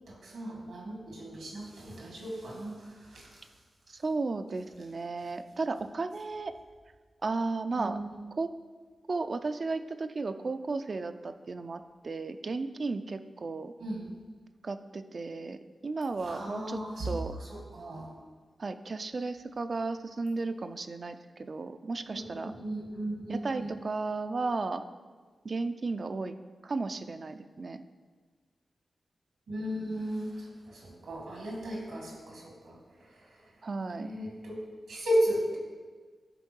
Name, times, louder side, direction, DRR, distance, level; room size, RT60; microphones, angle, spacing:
voice 1, 0.0-3.5 7.7-8.2 13.8-14.1 16.2-18.1 22.1-23.7 29.5-33.6 34.0-35.6, equal, 90° right, -2 dB, 2.0 m, -35 dB
voice 2, 3.9-6.5 7.2-8.0 8.3-8.5 9.1-13.7 14.6-16.8 17.0-17.3 18.6-22.5 23.3-24.8 25.4-26.3 26.6-27.8 33.6-34.1, right 3 dB, 60° right, 9 dB, 0.4 m, -34 dB
10.5 x 3.8 x 4.5 m, 1.4 s
cardioid pair, 40°, 0 cm